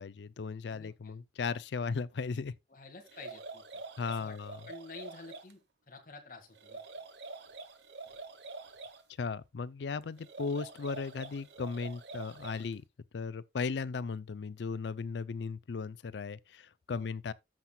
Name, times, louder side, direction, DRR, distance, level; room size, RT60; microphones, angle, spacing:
voice 1, 0.0-2.6 4.0-4.6 9.2-12.8 13.1-17.3, left 5 dB, 80° left, 0.5 m, -36 dB
voice 2, 0.7-1.2 2.7-4.4 4.7-5.6 5.9-6.8 16.9-17.1, left 3 dB, 50° left, 1.9 m, -50 dB
sound 1, 3.1-5.5 6.5-9.0 10.2-12.7, right 3 dB, 80° right, 1.0 m, -46 dB
13.5 x 5.9 x 2.3 m
head